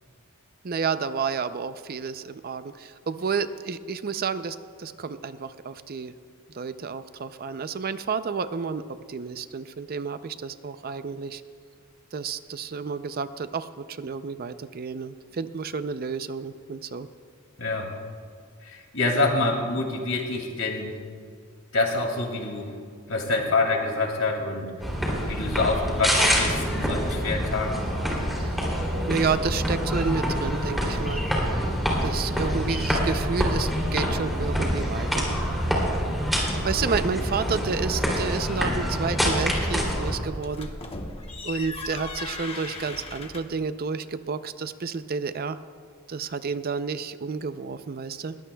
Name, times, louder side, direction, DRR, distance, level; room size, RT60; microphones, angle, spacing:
voice 1, 0.6-6.1 6.5-11.4 12.1-17.1 28.4-28.6 29.1-31.2 32.0-35.3 36.6-40.7 41.4-45.6 46.1-48.3, right 5 dB, 45° right, 12 dB, 0.5 m, -30 dB
voice 2, 17.6-17.9 18.6-20.9 21.7-22.7 23.1-24.7 25.3-27.8, left 3 dB, 85° left, 2 dB, 2.4 m, -26 dB
sound 1, 24.8-40.2, equal, ahead, 2.9 m, -26 dB
sound 2, 40.3-43.6, left 3 dB, 30° left, 1.1 m, -37 dB
21.0 x 17.0 x 2.3 m, 2.1 s
head